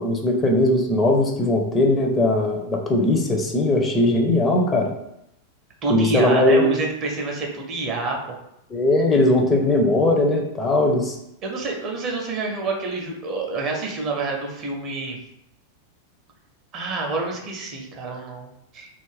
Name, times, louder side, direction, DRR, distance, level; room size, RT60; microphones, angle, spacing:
voice 1, 0.0-4.9 5.9-6.8 8.7-11.1, left 1 dB, 20° left, 1 dB, 0.5 m, -19 dB
voice 2, 5.8-8.4 11.4-15.2 16.7-18.9, right 3 dB, 35° right, 1 dB, 0.6 m, -27 dB
2.4 x 2.1 x 3.2 m, 0.81 s
figure-of-eight pair, 90°, 0 cm